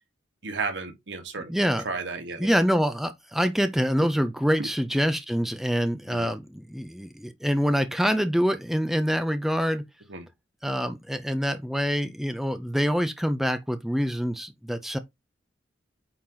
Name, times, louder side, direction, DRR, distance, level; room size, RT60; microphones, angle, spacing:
voice 1, 0.4-1.5 1.8-2.5 4.6-4.7 6.1-6.3 10.1-10.3, right 4 dB, 65° right, 1.5 m, -33 dB
voice 2, 1.5-1.8 2.4-9.8 10.6-15.0, equal, ahead, 0.5 m, -25 dB
8.6 x 2.9 x 3.8 m
head